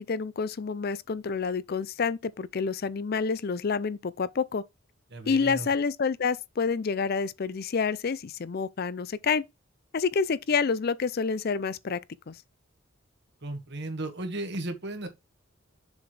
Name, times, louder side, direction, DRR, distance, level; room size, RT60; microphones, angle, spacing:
voice 1, 0.0-4.6 5.3-9.4 9.9-12.0 12.3-12.4, left 5 dB, 50° left, 0.5 m, -28 dB
voice 2, 5.1-5.7 13.4-15.1, right 1 dB, 55° right, 1.7 m, -35 dB
7.1 x 5.8 x 3.2 m
head